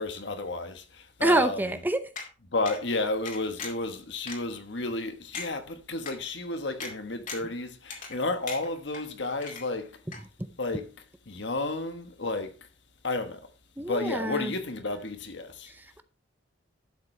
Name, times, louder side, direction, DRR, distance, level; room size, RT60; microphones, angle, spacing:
voice 1, 0.0-1.6 2.5-10.0 10.6-10.9 11.3-12.5 13.0-13.4 13.8-15.7, left 2 dB, 65° left, 1.3 m, -32 dB
voice 2, 1.2-2.0 10.4-10.5 13.8-14.5 15.7-16.0, right 1 dB, 10° right, 0.6 m, -27 dB
sound 1, 2.2-2.3 2.7-2.8 3.3-3.9 4.3-4.4 4.9-5.0 5.3-5.5 6.1-6.2 6.8-6.9 7.3-7.5 7.9-8.2 8.5-9.0 9.4-9.9 10.1-10.2, left 4 dB, 45° left, 2.3 m, -38 dB
11.5 x 7.4 x 3.2 m
head